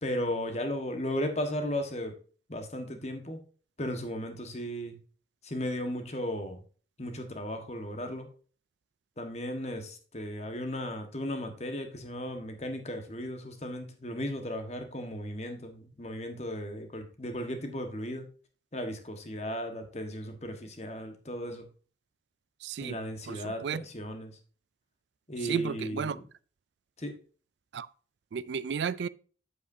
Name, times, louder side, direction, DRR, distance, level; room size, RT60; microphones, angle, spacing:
voice 1, 0.0-2.1 2.5-3.4 3.8-5.0 5.4-6.6 7.0-8.3 9.2-18.3 18.7-21.7 22.8-24.4 25.3-26.2 27.0-27.2, equal, 35° left, 1.4 m, -35 dB
voice 2, 22.6-23.0 23.3-23.8 25.4-26.2 27.7-27.9 28.3-29.1, right 6 dB, 70° right, 0.4 m, -33 dB
8.2 x 8.0 x 2.7 m
head